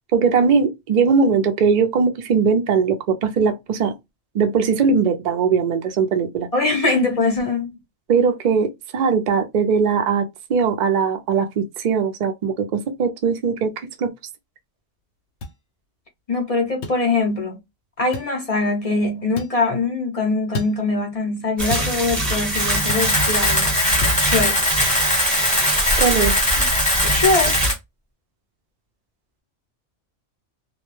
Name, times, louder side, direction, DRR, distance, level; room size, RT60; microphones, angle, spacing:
voice 1, 0.1-3.9 4.3-6.5 8.1-14.1 26.0-26.3, right 5 dB, 65° right, 0.4 m, -20 dB
voice 2, 6.5-7.7 16.3-17.6 18.0-23.8 24.2-24.6 26.6-26.7 27.1-27.6, left 3 dB, 45° left, 0.5 m, -22 dB
sound 1, 15.4-15.6 16.8-17.0 18.1-18.3 19.4-19.6 20.5-20.8 21.7-22.0 22.9-23.1 24.0-24.2, left 2 dB, 85° left, 0.9 m, -30 dB
sound 2, 21.6-27.7, right 1 dB, 20° right, 1.0 m, -23 dB
Camera, 22.5-27.7, left 1 dB, 5° left, 0.7 m, -21 dB
2.2 x 2.1 x 3.0 m
omnidirectional pair, 1.3 m